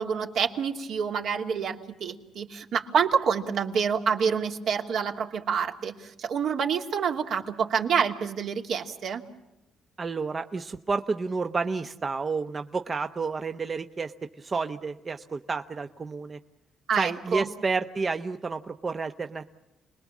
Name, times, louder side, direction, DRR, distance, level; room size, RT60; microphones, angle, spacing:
voice 1, 0.0-9.2 16.9-17.5, right 6 dB, 70° right, 2 dB, 2.7 m, -27 dB
voice 2, 10.0-16.4 17.0-19.5, right 4 dB, 35° right, 7 dB, 0.9 m, -30 dB
29.5 x 21.0 x 7.3 m, 0.97 s
cardioid pair, 90°, 0 cm